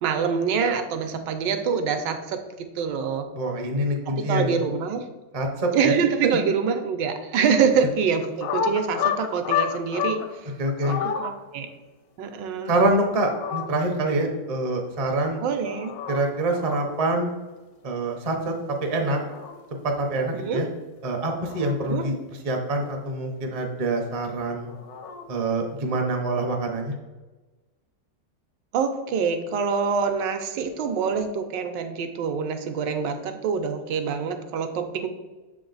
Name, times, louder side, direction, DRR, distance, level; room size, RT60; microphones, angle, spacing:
voice 1, 0.0-3.3 4.1-5.0 5.7-10.5 10.9-11.7 12.2-12.7 15.4-15.9 20.3-20.6 21.8-22.0 28.7-35.1, right 6 dB, 80° right, 7 dB, 1.3 m, -25 dB
voice 2, 3.3-4.6 5.3-5.9 6.2-6.4 10.6-11.0 12.7-15.4 16.1-17.3 17.8-18.5 18.8-19.2 19.8-20.7 21.0-22.1 22.4-24.7 25.3-26.9, right 2 dB, 40° right, 1 dB, 0.5 m, -25 dB
sound 1, 8.2-10.3 10.6-11.3 12.9-13.7 15.3-16.2 16.5-16.8 18.9-19.5 21.1-22.1 24.5-25.3, left 8 dB, 80° left, 1.4 m, -30 dB
6.7 x 3.6 x 3.9 m, 1.2 s
omnidirectional pair, 1.9 m